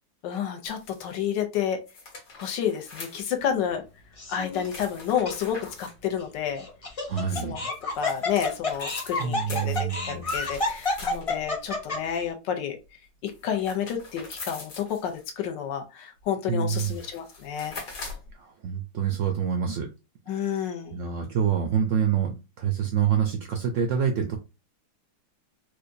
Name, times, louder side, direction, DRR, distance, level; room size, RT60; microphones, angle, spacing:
voice 1, 0.2-1.8 2.4-3.8 4.3-6.6 7.4-7.6 8.0-12.8 13.2-17.8 20.3-21.0, left 8 dB, 80° left, 1.4 m, -30 dB
sound 1, 0.6-1.2 1.9-3.6 4.6-6.0 7.5-11.4 13.3-15.2 16.2-16.3 16.6-18.3, left 3 dB, 65° left, 1.9 m, -43 dB
Laughter, 4.2-4.6 5.2-5.3 6.6-12.2, left 2 dB, 35° left, 0.5 m, -29 dB
voice 2, 7.1-7.7 9.2-10.5 16.5-17.0 18.3-19.9 20.3-24.4, right 8 dB, 80° right, 0.6 m, -27 dB
4.8 x 2.3 x 2.6 m
omnidirectional pair, 1.9 m